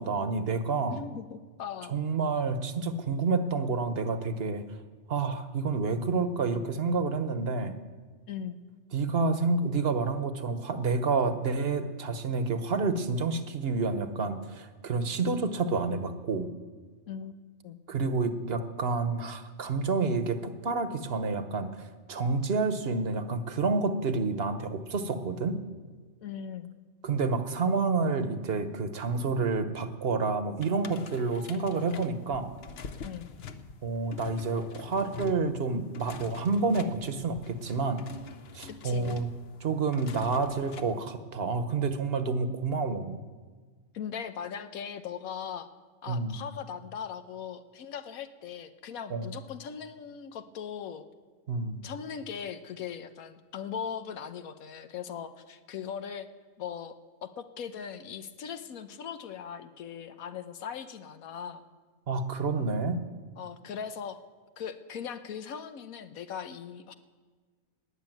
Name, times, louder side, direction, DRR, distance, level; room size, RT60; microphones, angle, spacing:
voice 1, 0.0-1.0 1.9-4.6 5.1-7.8 8.9-16.5 17.9-25.6 27.0-32.5 33.8-38.1 38.5-39.3 39.6-43.2 46.1-46.3 49.1-49.3 51.5-51.8 62.1-63.0, right 4 dB, 50° right, 9 dB, 1.1 m, -29 dB
voice 2, 0.9-2.0 8.3-8.6 17.1-17.8 26.2-26.7 33.0-33.3 38.8-39.2 43.9-45.7 46.0-51.0 51.8-56.3 56.6-56.9 57.2-61.6 63.4-64.2 64.6-66.9, left 7 dB, 90° left, 9 dB, 1.2 m, -39 dB
sound 1, 30.6-41.0, left 6 dB, 50° left, 0.9 m, -45 dB
19.5 x 6.9 x 9.1 m, 1.5 s
omnidirectional pair, 1.5 m